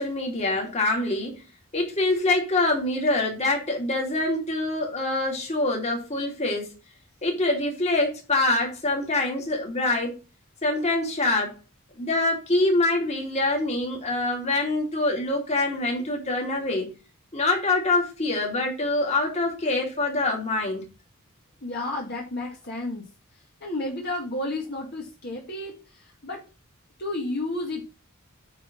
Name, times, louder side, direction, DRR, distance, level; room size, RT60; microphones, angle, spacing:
voice 1, 0.0-1.4 1.7-6.7 7.2-10.2 10.6-11.5 12.0-16.9 17.3-20.9, left 2 dB, 30° left, 2.8 m, -25 dB
voice 2, 21.6-23.0 23.6-26.4 27.0-27.8, left 2 dB, 50° left, 2.2 m, -32 dB
9.5 x 4.0 x 6.0 m
head